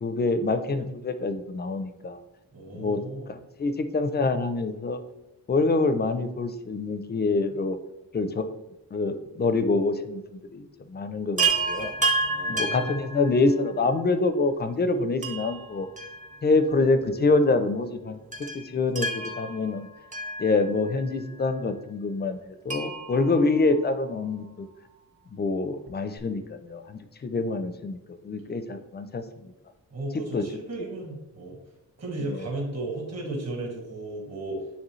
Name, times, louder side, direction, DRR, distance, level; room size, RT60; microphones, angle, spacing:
voice 1, 0.0-2.2 2.7-3.0 3.3-5.0 5.5-7.8 8.1-8.4 8.9-10.2 10.5-11.9 12.5-15.9 16.4-18.2 18.5-19.9 20.4-24.7 25.3-29.5 30.3-30.4 32.2-32.5, left 3 dB, 30° left, 10 dB, 0.4 m, -26 dB
voice 2, 2.5-3.3 12.2-12.9 29.9-31.6 32.0-34.6, right 2 dB, 45° right, -2 dB, 1.6 m, -35 dB
Chime, 11.4-13.8 15.2-16.8 17.0-17.1 18.3-21.0 22.7-24.3 25.9-26.0 26.2-26.3, right 3 dB, 20° right, 0.7 m, -31 dB
9.1 x 3.4 x 3.1 m, 0.95 s
wide cardioid pair, 160°, 36 cm